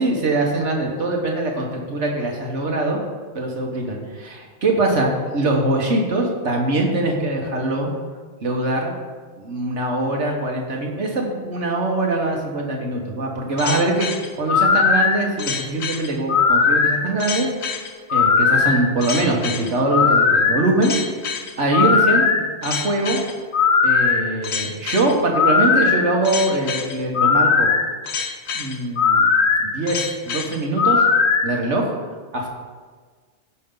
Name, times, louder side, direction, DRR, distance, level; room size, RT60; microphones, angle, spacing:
voice 1, 0.0-3.0 3.3-7.9 8.4-8.9 9.4-14.1 14.4-17.5 18.1-21.0 21.6-22.3 22.6-23.2 23.8-27.7 28.5-29.3 29.6-31.0 31.4-31.9 32.3-32.5, right 2 dB, 85° right, 0 dB, 1.8 m, -22 dB
sound 1, 13.6-31.5, left 5 dB, 75° left, 1.1 m, -19 dB
15.0 x 5.5 x 3.9 m, 1.5 s
omnidirectional pair, 1.2 m